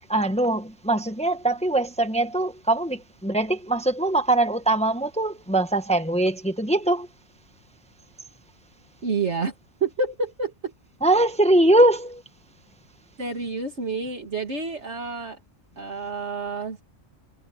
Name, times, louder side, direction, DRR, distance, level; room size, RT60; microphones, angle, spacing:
voice 1, 0.1-7.1 11.0-12.2, right 1 dB, 5° left, 1.2 m, -22 dB
voice 2, 9.0-9.5 9.8-10.7 13.2-15.4 15.8-16.8, right 4 dB, 60° right, 2.5 m, -29 dB
omnidirectional pair, 1.3 m